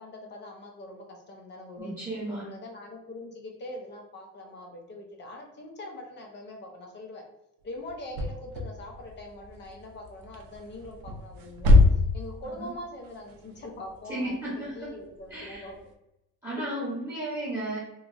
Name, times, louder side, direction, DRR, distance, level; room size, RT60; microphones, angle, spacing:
voice 1, 0.0-1.9 2.4-7.2 7.6-11.8 12.1-15.8, left 1 dB, 30° left, 1 dB, 0.3 m, -42 dB
voice 2, 1.8-2.5 12.4-12.7 14.1-14.9 15.3-15.7 16.4-17.8, right 1 dB, 10° right, -9 dB, 0.7 m, -34 dB
sound 1, 7.8-15.9, left 2 dB, 55° right, 0.5 m, -26 dB
3.0 x 2.3 x 2.5 m, 0.88 s
cardioid pair, 175°, 41 cm